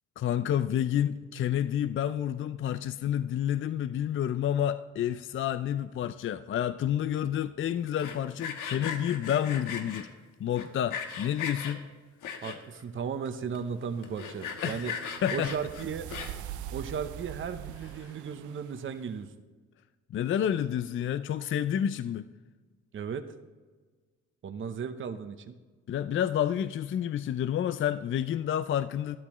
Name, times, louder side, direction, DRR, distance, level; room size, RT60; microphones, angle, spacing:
voice 1, 0.2-10.1 10.4-11.8 14.6-15.5 20.1-22.3 25.9-29.2, left 10 dB, 45° left, 13 dB, 0.4 m, -29 dB
Sawing, 7.9-10.0 10.6-11.7 12.2-12.8 13.3-13.4 13.5-13.6 14.0-16.5, left 6 dB, 90° left, 1.3 m, -37 dB
voice 2, 12.4-14.9 15.3-16.1 16.7-19.3 22.9-23.3 24.4-25.6, right 6 dB, 40° right, 9 dB, 0.8 m, -35 dB
sound 1, 13.8-19.1, right 11 dB, 75° right, 0.5 m, -44 dB
12.5 x 12.0 x 3.0 m, 1.4 s
cardioid pair, 90°, 30 cm